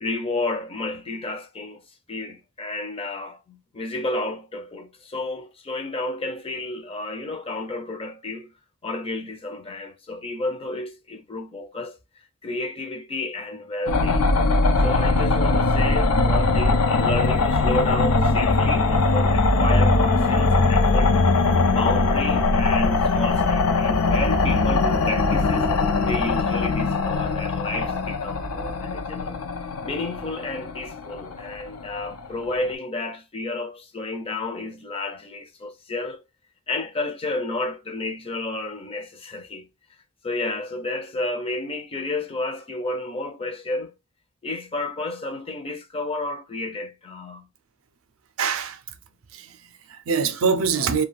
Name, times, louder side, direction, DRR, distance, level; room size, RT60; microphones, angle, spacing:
voice 1, 0.0-8.5 8.8-12.0 12.4-14.3 14.8-21.2 21.7-25.7 26.0-29.4 29.8-36.2 36.7-39.7 40.2-43.9 44.4-47.5, left 2 dB, 25° left, 0.5 m, -31 dB
sound 1, 13.9-32.6, left 3 dB, 90° left, 0.6 m, -21 dB
voice 2, 48.4-48.8 49.3-51.0, right 5 dB, 65° right, 0.4 m, -24 dB
2.3 x 2.2 x 3.3 m
head